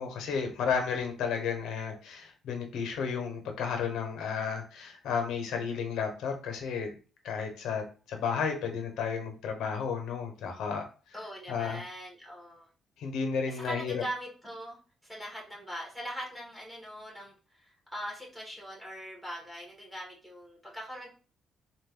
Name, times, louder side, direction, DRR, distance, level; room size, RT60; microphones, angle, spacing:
voice 1, 0.0-6.9 7.2-7.8 8.1-10.8 11.5-11.8 13.0-14.0, left 6 dB, 80° left, 4 dB, 1.0 m, -32 dB
voice 2, 11.1-12.7 13.5-21.1, equal, 10° right, -3 dB, 1.9 m, -41 dB
4.0 x 2.5 x 3.7 m, 0.37 s
cardioid pair, 90°, 0 cm